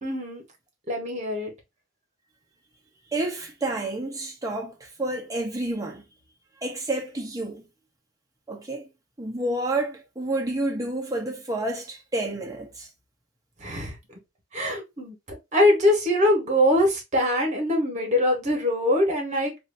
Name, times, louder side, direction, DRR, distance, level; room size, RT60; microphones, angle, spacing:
voice 1, 0.0-0.4 0.9-1.5 13.6-13.9 14.5-19.5, left 1 dB, 35° right, 1.5 m, -23 dB
voice 2, 3.1-6.0 6.6-7.6 8.5-8.9 9.2-12.9, right 2 dB, 15° right, 1.2 m, -29 dB
3.0 x 2.7 x 4.0 m
head